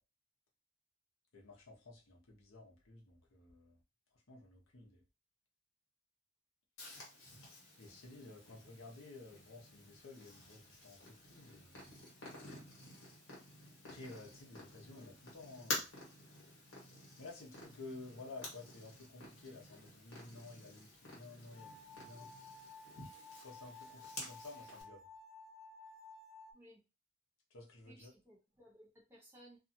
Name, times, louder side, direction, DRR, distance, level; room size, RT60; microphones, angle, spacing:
voice 1, 1.3-3.8 4.1-5.0 7.8-11.9 13.9-15.9 17.2-22.3 22.7-25.1 27.5-28.1, left 3 dB, 85° left, 0.9 m, -53 dB
Purr, 6.8-24.8, left 2 dB, 65° left, 1.4 m, -50 dB
sound 1, 21.5-26.5, left 3 dB, 20° left, 0.8 m, -55 dB
voice 2, 27.9-29.6, equal, 10° right, 0.7 m, -60 dB
2.6 x 2.3 x 2.7 m
head